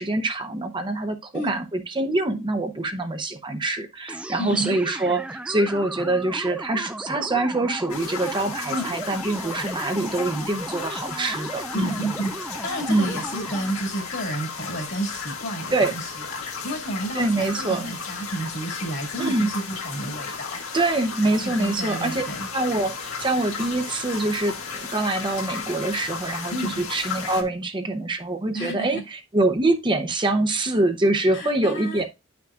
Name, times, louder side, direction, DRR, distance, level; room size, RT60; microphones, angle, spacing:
voice 1, 0.0-12.1 12.9-13.2 15.7-15.9 17.1-17.9 19.2-19.5 20.7-22.2 22.5-24.6 24.9-32.0, right 2 dB, 25° right, 0.7 m, -25 dB
sound 1, 4.1-13.9, right 1 dB, 5° right, 0.3 m, -36 dB
voice 2, 4.4-4.8 8.7-8.9 11.7-12.3 12.6-20.6 21.4-22.5 26.5-26.8 28.5-29.0 31.3-32.0, right 1 dB, 60° left, 2.3 m, -31 dB
sound 2, 7.9-27.4, left 5 dB, 90° left, 1.9 m, -34 dB
9.8 x 6.0 x 2.4 m
head